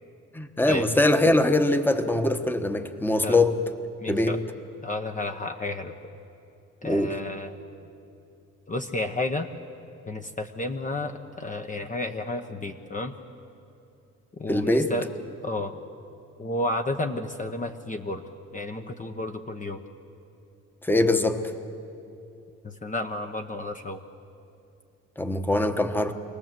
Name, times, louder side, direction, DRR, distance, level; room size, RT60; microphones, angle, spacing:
voice 1, 0.3-3.6 4.1-4.4 6.8-7.1 14.5-14.9 20.8-21.4 25.2-26.1, left 2 dB, 5° left, 8 dB, 1.2 m, -22 dB
voice 2, 4.0-4.4 4.8-5.9 6.8-7.6 8.7-9.5 10.1-13.1 14.4-15.1 15.4-15.8 16.4-18.2 18.5-19.8 22.6-24.0, left 2 dB, 25° left, 5 dB, 1.0 m, -31 dB
25.5 x 18.5 x 7.6 m, 2.8 s
cardioid pair, 90°, 30 cm